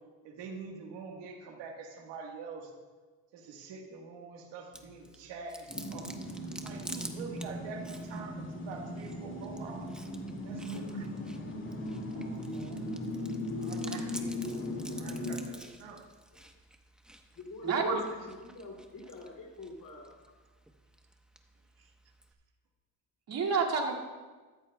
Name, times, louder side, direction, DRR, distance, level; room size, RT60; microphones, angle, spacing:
voice 1, 0.2-2.7 3.3-6.1 6.6-9.9 10.4-11.0 13.6-14.7 14.9-16.1, right 4 dB, 90° right, 2 dB, 1.6 m, -45 dB
Chewing mastication, 4.7-22.3, equal, ahead, 1.0 m, -50 dB
sound 1, 5.7-15.4, left 1 dB, 30° left, 2.3 m, -38 dB
voice 2, 12.1-12.8 13.9-14.0 17.6-18.0 23.3-23.9, right 5 dB, 60° right, -2 dB, 2.4 m, -31 dB
voice 3, 17.3-20.1, left 2 dB, 50° left, -2 dB, 2.7 m, -46 dB
14.0 x 13.5 x 2.3 m, 1.3 s
supercardioid pair, 80°, 41 cm